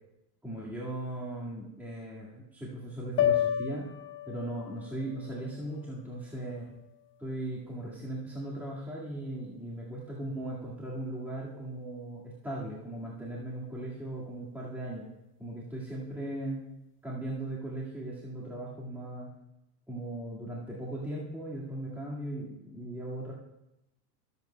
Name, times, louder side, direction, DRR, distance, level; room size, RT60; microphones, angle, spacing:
voice 1, 0.4-3.9 4.3-6.7 7.2-15.1 15.4-16.6 17.0-19.3 19.9-23.3, right 1 dB, 5° right, -7 dB, 1.9 m, -38 dB
sound 1, 3.2-7.4, left 10 dB, 25° left, 0.8 m, -33 dB
23.5 x 8.3 x 2.2 m, 0.87 s
hypercardioid pair, 105°, 47 cm